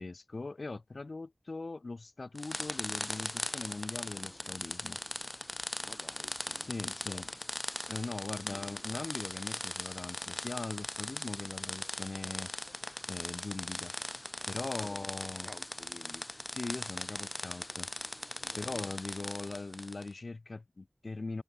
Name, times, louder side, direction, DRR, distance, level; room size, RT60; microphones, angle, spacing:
voice 1, 0.0-5.0 6.6-7.3 7.9-12.5 13.1-13.9 14.5-15.5 16.5-17.9 18.6-21.4, left 3 dB, 70° left, 1.3 m, -40 dB
sound 1, 2.4-20.1, left 1 dB, 25° left, 4.0 m, -40 dB
voice 2, 5.8-6.4 7.0-7.3 14.6-15.1 15.4-16.3 18.4-18.9, left 2 dB, 50° left, 4.0 m, -52 dB
wide cardioid pair, 65°, 0 cm